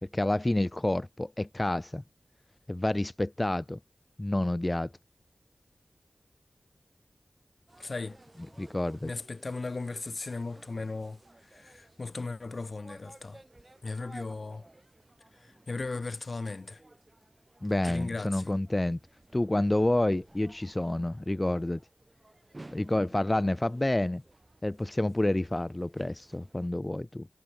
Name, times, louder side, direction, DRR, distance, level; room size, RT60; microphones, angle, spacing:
voice 1, 0.0-2.0 2.7-3.8 4.2-4.9 8.6-9.1 17.6-19.0 19.3-21.8 22.7-24.2 24.6-27.3, left 1 dB, 25° left, 0.3 m, -29 dB
sound 1, 7.7-26.7, right 2 dB, 30° right, 7.9 m, -56 dB
voice 2, 7.8-8.2 9.0-13.4 13.8-14.6 15.4-16.8 17.8-18.5, left 3 dB, 60° left, 1.0 m, -37 dB
wide cardioid pair, 55°, 0 cm